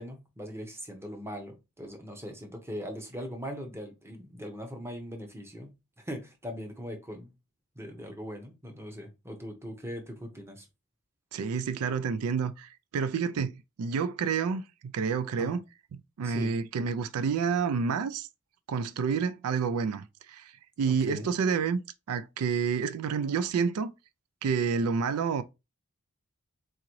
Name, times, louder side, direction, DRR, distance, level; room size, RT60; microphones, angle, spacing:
voice 1, 0.0-7.3 7.8-10.7 15.4-15.6 16.2-16.5 21.0-21.3, equal, 10° right, 0.9 m, -40 dB
voice 2, 11.3-15.6 15.9-18.3 18.7-20.5 20.8-21.8 22.1-23.9 24.4-25.4, right 6 dB, 80° right, 0.4 m, -29 dB
3.8 x 3.7 x 3.0 m
head